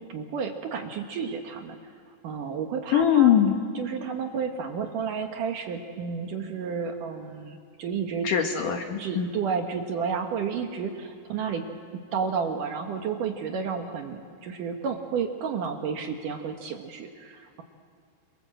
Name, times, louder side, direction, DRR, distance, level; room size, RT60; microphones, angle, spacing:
voice 1, 0.1-1.8 2.2-3.3 3.7-8.3 9.0-11.7 11.9-17.6, right 6 dB, 65° right, 4 dB, 2.4 m, -31 dB
voice 2, 2.9-3.5 8.2-9.3, left 9 dB, 65° left, 4 dB, 2.3 m, -21 dB
27.5 x 26.5 x 7.8 m, 2.4 s
omnidirectional pair, 4.9 m